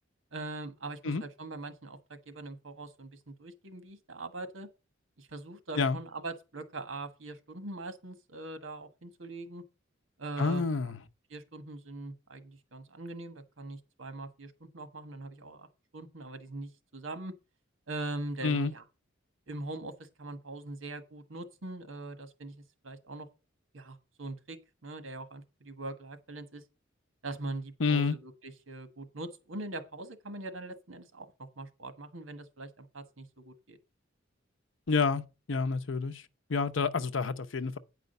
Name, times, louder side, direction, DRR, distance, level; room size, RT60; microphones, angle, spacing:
voice 1, 0.3-4.7 5.2-9.6 10.2-10.6 11.3-15.7 15.9-17.3 17.9-18.8 19.5-23.3 23.7-26.6 27.2-33.8, right 2 dB, 80° right, 1.5 m, -42 dB
voice 2, 10.4-11.0 18.4-18.7 27.8-28.1 34.9-35.2 35.5-36.2 36.5-37.8, left 4 dB, 70° left, 0.7 m, -28 dB
9.5 x 5.0 x 6.6 m
head